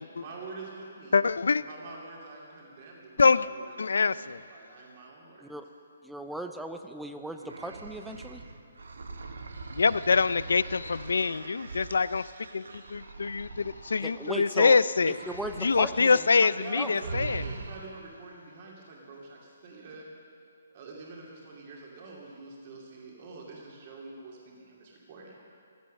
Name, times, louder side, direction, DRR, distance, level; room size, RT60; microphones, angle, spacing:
voice 1, 0.1-1.2 1.5-5.5 16.5-20.1 20.7-25.4, right 3 dB, 35° right, -3 dB, 2.6 m, -46 dB
voice 2, 1.1-1.6 3.2-3.5 3.8-4.4 9.7-15.2 15.6-17.4, left 4 dB, 85° left, 17 dB, 0.4 m, -25 dB
voice 3, 6.0-8.4 14.0-14.8 15.1-16.5 16.7-16.9, right 1 dB, ahead, 6 dB, 0.5 m, -37 dB
sound 1, 7.4-14.5 15.0-16.2 16.5-16.7 17.0-18.1, right 3 dB, 90° right, 1.3 m, -42 dB
15.0 x 13.5 x 6.5 m, 2.4 s
hypercardioid pair, 165°, 0 cm